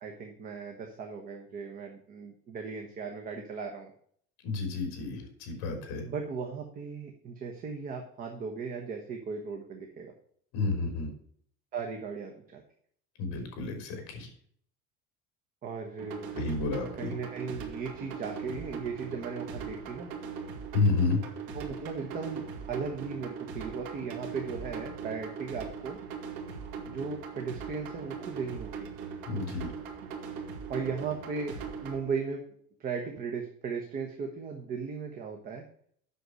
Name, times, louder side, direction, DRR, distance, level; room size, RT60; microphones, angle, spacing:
voice 1, 0.0-3.9 6.0-10.1 11.7-12.6 15.6-16.3 17.0-20.1 21.5-22.4 22.7-26.0 26.9-28.9 30.7-32.4 32.8-35.6, right 5 dB, 30° right, 2 dB, 1.1 m, -37 dB
voice 2, 4.4-6.0 10.5-11.1 13.2-14.3 16.3-17.1 20.7-21.2 29.3-29.7, left 3 dB, 55° left, 4 dB, 3.5 m, -30 dB
sound 1, 16.0-32.0, right 6 dB, 65° right, 2.1 m, -40 dB
8.2 x 6.3 x 6.4 m, 0.62 s
cardioid pair, 180°, 30 cm